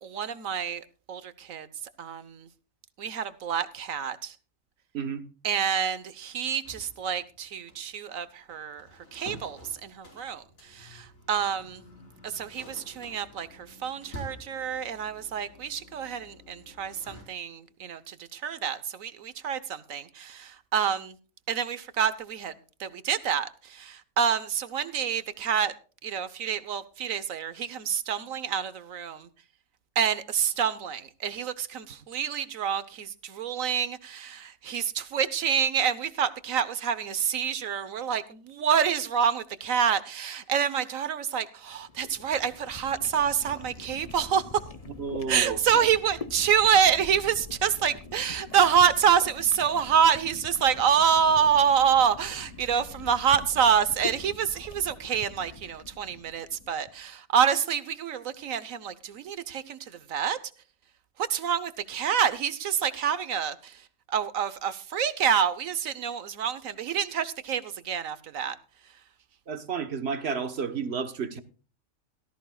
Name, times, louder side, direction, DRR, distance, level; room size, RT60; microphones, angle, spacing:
voice 1, 0.0-1.7 2.0-2.5 3.0-4.3 5.4-11.8 12.2-21.2 21.5-22.5 22.8-25.7 26.0-29.3 30.0-44.5 45.3-60.4 61.2-68.6, right 8 dB, 75° right, 1.4 m, -27 dB
sound 1, 6.6-17.2, left 1 dB, 70° left, 5.4 m, -49 dB
sound 2, 41.7-56.9, left 4 dB, 30° left, 1.0 m, -44 dB
voice 2, 45.0-45.6 69.5-71.4, right 6 dB, 50° right, 1.4 m, -31 dB
18.0 x 14.0 x 2.3 m
omnidirectional pair, 1.5 m